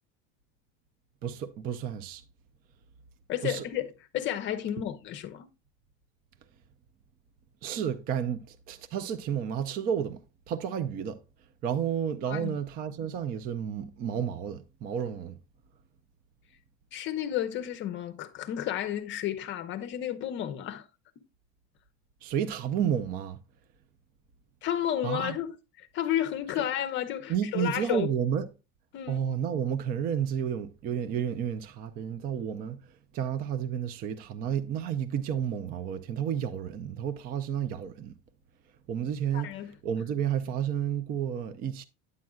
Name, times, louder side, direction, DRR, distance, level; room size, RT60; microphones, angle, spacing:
voice 1, 1.2-2.2 3.4-3.6 7.6-10.2 10.5-11.2 11.6-15.3 22.2-23.4 25.0-25.4 27.3-28.5 29.1-32.8 33.1-38.1 38.9-39.5 39.8-41.8, right 8 dB, 30° right, 0.4 m, -31 dB
voice 2, 3.3-5.5 12.3-12.6 16.9-20.8 24.6-28.1 28.9-29.2 39.3-39.7, left 11 dB, 35° left, 0.6 m, -32 dB
9.5 x 7.4 x 2.3 m
cardioid pair, 160°, 34 cm